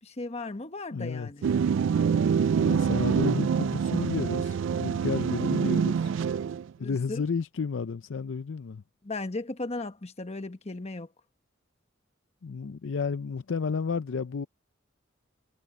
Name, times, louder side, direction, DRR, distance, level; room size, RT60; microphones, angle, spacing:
voice 1, 0.0-1.5 2.6-2.8 6.8-7.2 9.0-11.1, left 2 dB, 30° left, 1.1 m, -36 dB
voice 2, 0.9-1.3 2.6-6.1 6.8-8.8 12.4-14.5, left 5 dB, 65° left, 0.5 m, -32 dB
sound 1, 1.4-6.7, right 6 dB, 65° right, 0.3 m, -26 dB
head